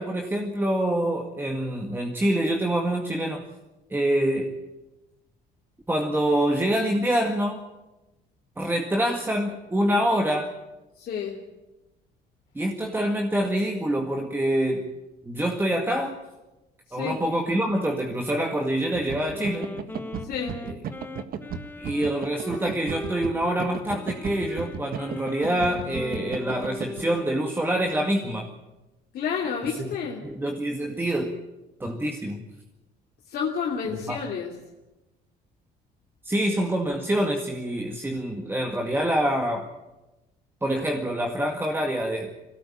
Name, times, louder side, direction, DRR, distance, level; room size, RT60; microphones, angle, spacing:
voice 1, 0.0-3.5 3.9-4.5 5.9-7.6 8.6-10.5 12.6-14.9 15.3-16.2 16.9-19.7 21.8-28.5 29.8-29.9 30.2-31.4 31.8-32.4 33.9-34.2 36.2-39.7 40.6-42.5, right 1 dB, 10° right, 2 dB, 2.0 m, -26 dB
voice 2, 11.0-11.4 16.9-17.2 20.2-20.6 29.1-30.2 33.3-34.5, left 7 dB, 65° left, -2 dB, 2.9 m, -30 dB
sound 1, 18.9-27.0, right 7 dB, 60° right, 1.6 m, -35 dB
Wind instrument woodwind instrument, 19.3-27.5, left 2 dB, 10° left, 1.4 m, -39 dB
21.0 x 17.5 x 8.8 m, 1.0 s
cardioid pair, 110°, 17 cm